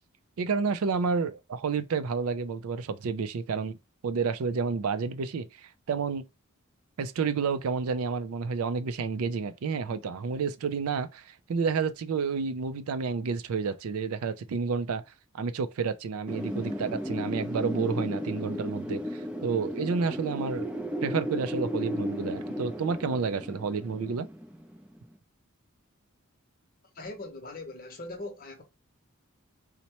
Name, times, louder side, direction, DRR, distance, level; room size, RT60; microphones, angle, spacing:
voice 1, 0.4-3.8 4.0-6.2 7.0-15.0 15.3-20.7 21.0-24.3, right 5 dB, 80° right, 0.4 m, -30 dB
Wind, 16.3-25.0, equal, 5° right, 0.4 m, -34 dB
voice 2, 26.9-28.6, left 2 dB, 40° left, 0.8 m, -40 dB
4.2 x 2.1 x 2.9 m
head